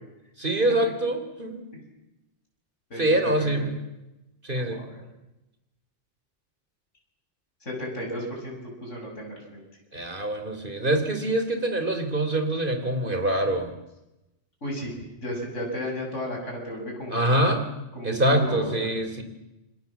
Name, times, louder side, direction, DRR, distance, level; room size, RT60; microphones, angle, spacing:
voice 1, 0.4-1.6 3.0-3.6 4.4-4.9 9.9-13.7 17.1-17.7 18.0-19.2, right 1 dB, 45° right, 8 dB, 3.7 m, -25 dB
voice 2, 2.9-3.7 4.5-5.0 7.6-9.6 14.6-17.4 17.9-18.9, left 1 dB, 80° left, 0 dB, 7.3 m, -34 dB
28.5 x 25.0 x 7.4 m, 0.96 s
omnidirectional pair, 1.2 m